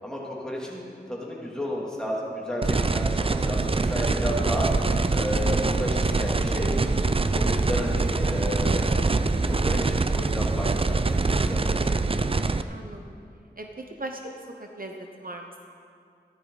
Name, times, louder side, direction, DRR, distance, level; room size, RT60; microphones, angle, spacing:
voice 1, 0.0-4.7 5.1-6.7 7.3-9.0 9.6-11.2 11.4-12.0, equal, 5° left, -5 dB, 2.8 m, -32 dB
sound 1, 2.6-12.6, right 3 dB, 30° right, 0.4 m, -24 dB
sound 2, 4.6-11.8, right 1 dB, 15° right, 1.0 m, -39 dB
voice 2, 12.7-13.2 13.6-14.3 14.6-15.7, right 2 dB, 55° right, 3 dB, 0.9 m, -39 dB
14.5 x 12.5 x 4.0 m, 2.4 s
wide cardioid pair, 65°, 18 cm